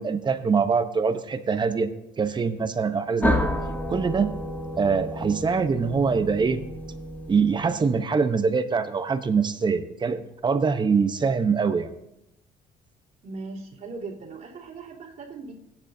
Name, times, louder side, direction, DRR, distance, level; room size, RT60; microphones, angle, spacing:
voice 1, 0.0-1.9 2.2-3.5 3.9-4.3 4.8-6.6 7.3-11.9, right 5 dB, 25° right, 9 dB, 0.9 m, -24 dB
sound 1, 3.2-7.9, left 1 dB, 10° left, 1.2 m, -30 dB
voice 2, 13.2-15.5, right 3 dB, 55° right, -5 dB, 3.4 m, -38 dB
16.0 x 10.5 x 2.7 m, 0.87 s
cardioid pair, 110°, 17 cm